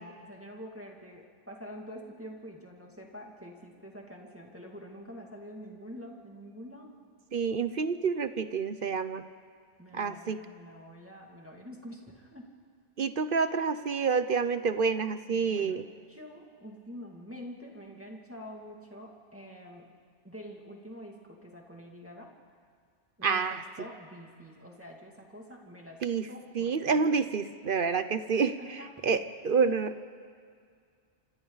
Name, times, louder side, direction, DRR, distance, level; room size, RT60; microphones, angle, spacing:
voice 1, 0.0-7.0 9.8-12.5 15.3-19.9 20.2-22.3 23.2-27.2 28.6-29.2 29.6-29.7, equal, 10° right, -1 dB, 2.3 m, -47 dB
voice 2, 7.3-9.2 9.9-10.4 13.0-15.8 23.2-23.6 26.0-26.3 26.6-28.6 29.0-29.9, right 5 dB, 55° right, 11 dB, 0.8 m, -28 dB
27.5 x 26.5 x 4.0 m, 2.1 s
omnidirectional pair, 1.2 m